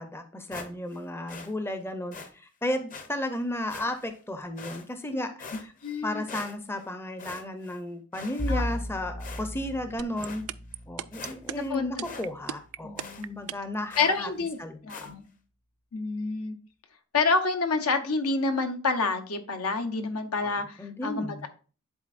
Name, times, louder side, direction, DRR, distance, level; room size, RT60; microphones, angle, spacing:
voice 1, 0.0-5.7 6.0-10.4 10.9-14.3 14.6-14.8 15.0-15.1 20.4-21.5, left 1 dB, 10° left, 8 dB, 0.5 m, -34 dB
sound 1, 0.5-1.0 1.3-1.5 2.1-2.3 2.9-3.1 3.7-4.2 4.6-5.1 5.4-6.0 6.3-6.9 7.2-7.8 8.1-8.8 9.2-9.7 10.2-10.4 10.8-10.9 11.1-11.7 12.0-12.3 12.5-12.6 13.0-13.2 13.9-14.2 14.9-15.1, left 4 dB, 40° left, 0.8 m, -43 dB
voice 2, 5.8-6.2 8.5-8.6 11.6-11.9 12.8-13.5 14.0-15.2 15.9-16.5 17.1-21.3, left 3 dB, 75° left, 7 dB, 0.9 m, -28 dB
Bowed string instrument, 8.4-13.5, equal, 60° left, 2.0 m, -37 dB
sound 2, 10.0-13.8, right 12 dB, 75° right, 0.3 m, -35 dB
10.5 x 4.1 x 2.5 m, 0.38 s
head